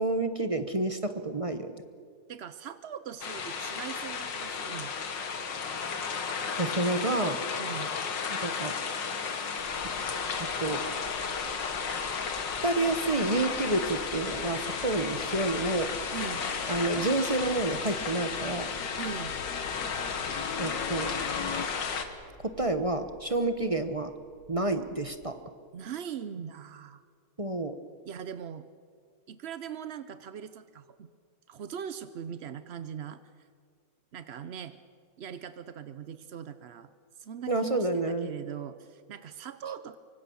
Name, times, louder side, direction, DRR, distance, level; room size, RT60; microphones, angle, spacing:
voice 1, 0.0-1.7 6.6-7.4 8.3-8.7 10.4-10.8 12.6-15.9 16.7-18.7 20.6-21.1 22.4-24.1 24.5-25.4 27.4-27.8 37.5-38.3, right 2 dB, 25° right, 8 dB, 0.8 m, -29 dB
voice 2, 2.3-4.9 7.6-7.9 16.1-16.4 19.0-19.4 25.7-27.0 28.1-28.6 29.3-31.1 31.5-33.2 34.1-34.8 35.2-36.9 37.2-40.0, right 8 dB, 60° right, 12 dB, 0.6 m, -40 dB
sound 1, 3.2-22.0, left 5 dB, 85° left, 2.4 m, -34 dB
sound 2, 9.6-25.3, left 1 dB, 90° right, 4.4 m, -52 dB
sound 3, 14.2-21.6, left 6 dB, 60° left, 1.7 m, -39 dB
24.5 x 24.5 x 7.1 m, 2.1 s
omnidirectional pair, 1.9 m